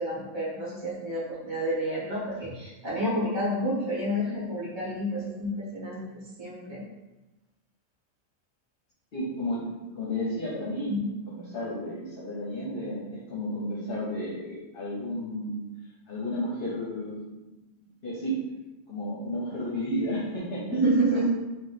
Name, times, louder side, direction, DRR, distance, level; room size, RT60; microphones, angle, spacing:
voice 1, 0.0-6.8 10.9-11.1 20.7-21.3, right 1 dB, 25° right, -7 dB, 1.2 m, -29 dB
voice 2, 9.1-11.0 11.3-15.6 16.1-17.4 17.8-18.4 18.9-21.3, equal, 50° left, -5 dB, 1.1 m, -32 dB
4.7 x 2.5 x 4.1 m, 1.1 s
omnidirectional pair, 1.2 m